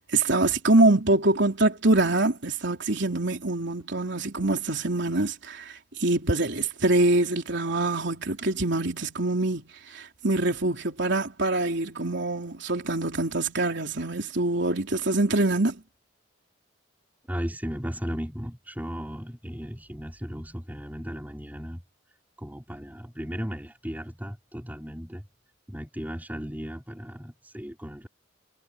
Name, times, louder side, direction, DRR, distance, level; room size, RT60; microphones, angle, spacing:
voice 1, 0.0-15.8, right 2 dB, 60° right, 3.8 m, -24 dB
voice 2, 17.3-21.8 22.4-25.2 25.7-28.1, equal, 10° right, 4.9 m, -36 dB
head